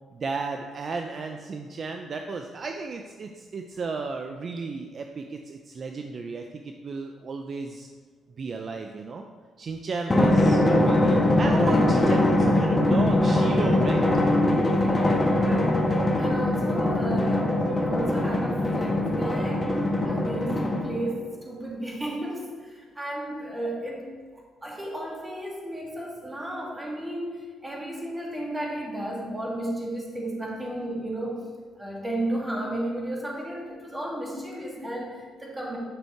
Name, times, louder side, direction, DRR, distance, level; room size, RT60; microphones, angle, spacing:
voice 1, 0.1-7.9 8.4-9.2 9.6-14.0, right 4 dB, 45° right, 4 dB, 0.6 m, -34 dB
Drum, 10.1-21.1, left 1 dB, 20° left, 1.5 m, -22 dB
voice 2, 14.8-24.2 24.6-31.5 31.8-35.8, right 1 dB, 15° right, -2 dB, 2.5 m, -33 dB
9.8 x 6.3 x 4.5 m, 1.5 s
cardioid pair, 90°, 0 cm